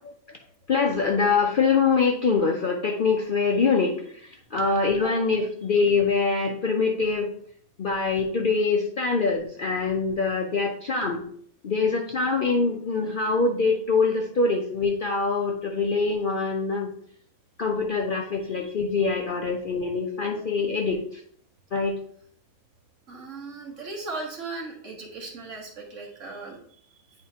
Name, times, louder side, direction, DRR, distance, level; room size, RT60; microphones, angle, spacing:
voice 1, 0.7-7.3 7.8-11.3 11.6-16.9 17.6-21.2 21.7-22.0, left 4 dB, 55° left, 1 dB, 0.6 m, -24 dB
voice 2, 23.1-26.6, right 3 dB, 60° right, 0 dB, 1.6 m, -37 dB
8.8 x 4.3 x 2.8 m, 0.63 s
omnidirectional pair, 1.5 m